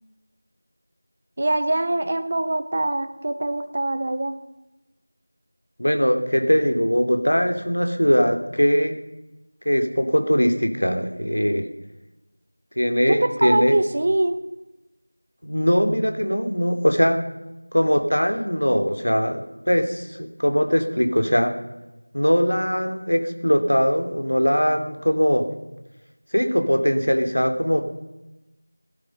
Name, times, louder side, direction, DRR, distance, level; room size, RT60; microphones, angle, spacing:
voice 1, 1.4-4.4 13.1-14.4, right 1 dB, 25° right, 9 dB, 0.9 m, -23 dB
voice 2, 5.8-8.9 9.6-11.7 12.8-13.8 15.4-17.2 17.7-21.6 22.1-25.5 26.3-27.8, equal, 80° left, 6 dB, 2.7 m, -21 dB
18.5 x 12.0 x 5.5 m, 1.0 s
figure-of-eight pair, 175°, 0 cm